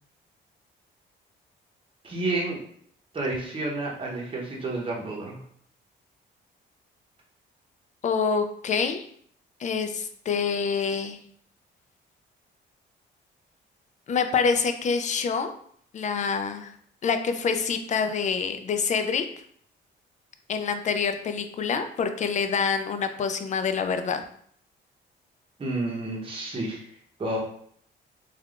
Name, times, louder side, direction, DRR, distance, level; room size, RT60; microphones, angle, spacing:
voice 1, 2.0-2.6 3.1-5.4 25.6-26.8 27.2-27.4, right 2 dB, 25° right, -3 dB, 0.8 m, -30 dB
voice 2, 8.0-9.0 9.6-11.2 14.1-15.5 15.9-16.7 17.0-19.2 20.5-24.2, left 5 dB, 40° left, 8 dB, 0.4 m, -26 dB
3.3 x 2.3 x 2.4 m, 0.62 s
cardioid pair, 90°, 20 cm